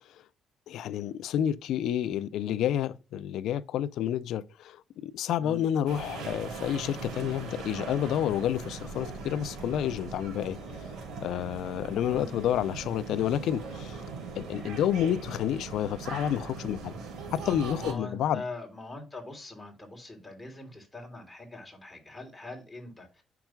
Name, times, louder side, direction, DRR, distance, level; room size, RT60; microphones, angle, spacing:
voice 1, 0.7-4.8 5.0-10.6 11.2-14.0 14.4-16.9 17.3-18.4, left 10 dB, 80° left, 0.5 m, -29 dB
sound 1, 5.9-17.9, right 4 dB, 75° right, 3.1 m, -40 dB
voice 2, 12.0-12.4 17.8-23.2, left 2 dB, 15° left, 3.2 m, -42 dB
8.8 x 5.9 x 2.3 m
cardioid pair, 90°, 0 cm